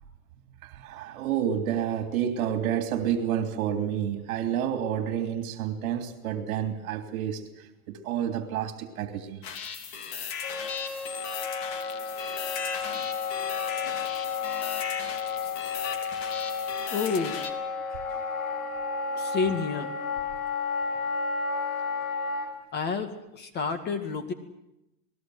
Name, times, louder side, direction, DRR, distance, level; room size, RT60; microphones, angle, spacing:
voice 1, 0.6-9.4 12.9-13.1 16.8-16.9, right 9 dB, 60° right, 6 dB, 3.0 m, -29 dB
sound 1, 9.4-17.5, left 6 dB, 45° left, 3.4 m, -37 dB
Wind instrument woodwind instrument, 10.4-22.5, left 5 dB, 85° left, 6.1 m, -32 dB
voice 2, 16.9-17.4 19.2-19.9 22.7-24.3, left 5 dB, 25° left, 8 dB, 2.1 m, -29 dB
27.5 x 20.0 x 7.9 m, 0.88 s
supercardioid pair, 150°, 44 cm